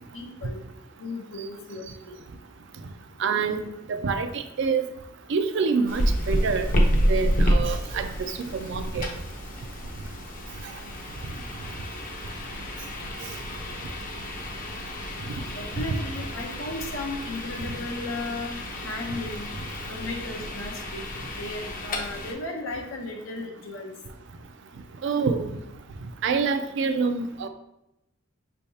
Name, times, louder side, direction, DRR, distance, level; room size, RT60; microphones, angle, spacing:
voice 1, 0.1-0.6 1.0-2.2 15.5-19.5 19.9-21.0 21.3-23.9, left 2 dB, 90° left, 1 dB, 0.9 m, -35 dB
voice 2, 3.2-4.8 5.3-6.7 6.9-9.1 25.0-25.5 26.2-27.5, right 5 dB, 65° right, 8 dB, 0.4 m, -26 dB
sound 1, 5.9-22.3, equal, 45° left, 0.6 m, -29 dB
5.5 x 3.3 x 2.8 m, 0.87 s
head